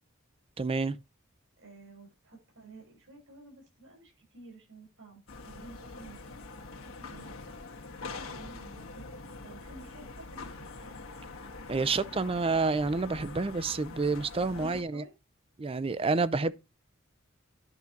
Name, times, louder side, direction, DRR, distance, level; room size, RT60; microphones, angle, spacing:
voice 1, 0.6-1.0 11.7-15.0 15.6-16.5, right 3 dB, 25° right, 0.4 m, -29 dB
voice 2, 1.6-6.5 6.8-7.7 8.2-9.0 9.4-10.9 14.7-15.1, right 3 dB, 65° right, 6.9 m, -52 dB
sound 1, 5.3-14.8, left 3 dB, 75° left, 1.4 m, -44 dB
11.0 x 4.0 x 5.8 m
head